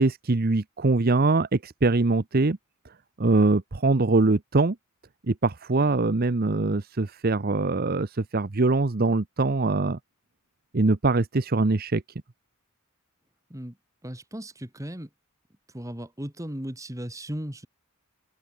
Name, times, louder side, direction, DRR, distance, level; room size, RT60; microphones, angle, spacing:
voice 1, 0.0-2.6 3.2-4.8 5.3-10.0 10.7-12.0, right 3 dB, 45° right, 0.8 m, -23 dB
voice 2, 14.0-15.1 15.7-17.7, equal, 15° right, 2.2 m, -36 dB
open air
head